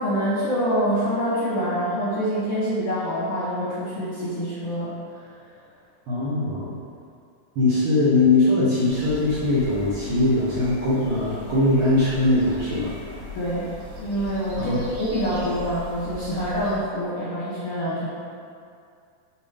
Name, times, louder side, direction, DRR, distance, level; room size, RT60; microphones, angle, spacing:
voice 1, 0.0-5.4 13.3-13.7 14.0-18.1, equal, 65° left, -8 dB, 1.5 m, -26 dB
voice 2, 6.1-6.8 7.5-13.0 14.6-14.8, left 2 dB, 85° right, -9 dB, 1.1 m, -21 dB
sound 1, 8.8-16.8, left 3 dB, 65° right, 2.3 m, -39 dB
7.8 x 4.6 x 3.5 m, 2.4 s
omnidirectional pair, 4.0 m